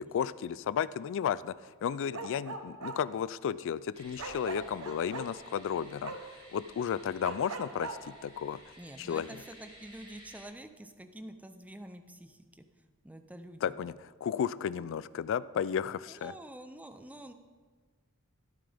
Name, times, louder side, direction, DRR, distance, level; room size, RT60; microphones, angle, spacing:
voice 1, 0.0-8.6 9.0-9.4 13.6-16.3, left 8 dB, 60° left, 18 dB, 0.3 m, -33 dB
Bark, 2.1-3.0 4.2-5.3 6.0-6.2 7.2-8.0, right 3 dB, 70° right, 1.0 m, -39 dB
sound 1, 3.9-10.4, equal, 30° right, 3.5 m, -55 dB
voice 2, 8.8-12.6 13.0-13.6 14.8-14.9 16.1-17.3, right 1 dB, 5° right, 8 dB, 0.6 m, -47 dB
12.5 x 11.0 x 3.5 m, 1.5 s
head